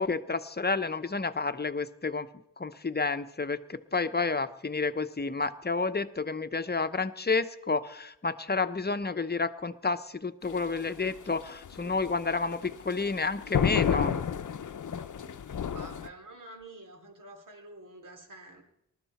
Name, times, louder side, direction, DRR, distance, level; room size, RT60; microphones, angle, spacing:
voice 1, 0.0-2.3 2.6-14.1, left 4 dB, 30° left, 10 dB, 0.9 m, -30 dB
sound 1, 10.4-16.1, left 8 dB, 60° left, 0.8 m, -31 dB
voice 2, 15.3-18.6, right 2 dB, 60° right, 3 dB, 3.4 m, -48 dB
19.5 x 12.5 x 4.3 m, 0.79 s
cardioid pair, 50°, 35 cm